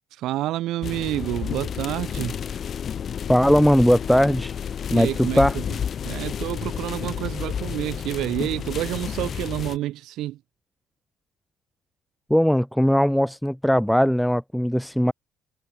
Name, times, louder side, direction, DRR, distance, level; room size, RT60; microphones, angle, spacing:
voice 1, 0.2-2.4 4.9-5.6 6.0-10.4, right 15 dB, 70° right, 2.4 m, -29 dB
sound 1, 0.8-9.8, left 8 dB, 45° left, 2.6 m, -31 dB
voice 2, 3.3-4.5 4.9-5.6 12.3-15.1, equal, ahead, 0.4 m, -19 dB
cardioid pair, 95°, 0 cm